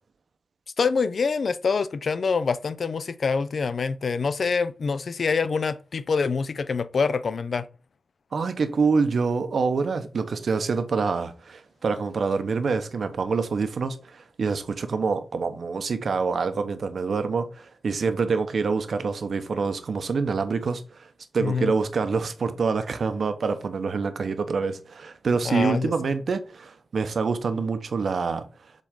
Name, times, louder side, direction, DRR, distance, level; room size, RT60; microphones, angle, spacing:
voice 1, 0.8-7.6 21.4-21.7 25.4-25.9, left 5 dB, 60° left, 0.4 m, -25 dB
voice 2, 8.3-20.8 21.3-28.4, right 4 dB, 65° right, 0.8 m, -26 dB
7.4 x 3.9 x 3.6 m
wide cardioid pair, 120°, 0 cm